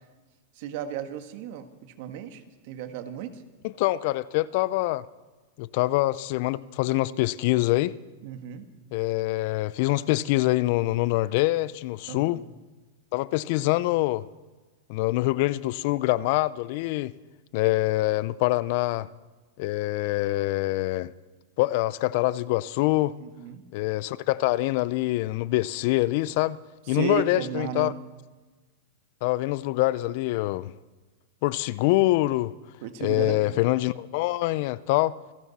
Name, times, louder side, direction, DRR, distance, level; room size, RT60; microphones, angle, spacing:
voice 1, 0.6-3.4 8.2-8.6 12.1-12.5 23.2-23.6 26.9-28.0 32.8-33.6, right 8 dB, 55° right, 1.6 m, -34 dB
voice 2, 3.6-5.0 5.6-8.0 8.9-12.4 13.1-14.3 14.9-17.1 17.5-19.1 19.6-21.1 21.6-23.1 23.7-26.6 26.9-27.9 29.2-30.7 31.4-32.5 33.0-35.2, left 18 dB, 55° left, 0.5 m, -25 dB
27.5 x 12.0 x 4.2 m
hypercardioid pair, 120°, 0 cm